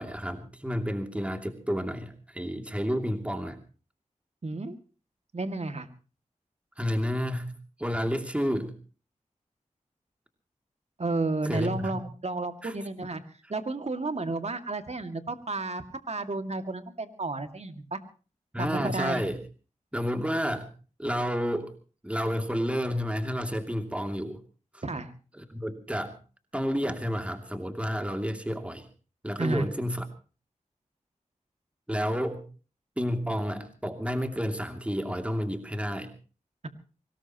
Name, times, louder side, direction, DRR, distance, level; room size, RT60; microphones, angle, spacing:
voice 1, 0.0-3.6 6.8-7.5 7.8-8.8 11.4-12.0 12.6-12.7 18.5-19.4 19.9-20.7 21.0-21.7 22.0-24.4 24.7-24.8 25.3-26.2 26.5-28.9 29.2-30.0 31.9-32.4 33.0-36.1, equal, 10° right, 6 dB, 2.8 m, -30 dB
voice 2, 4.4-4.8 5.3-5.9 11.0-13.2 13.5-18.0 18.6-19.2 24.8-25.1 29.4-29.7, right 3 dB, 55° right, 8 dB, 2.3 m, -32 dB
24.0 x 19.0 x 3.0 m, 0.37 s
cardioid pair, 50°, 13 cm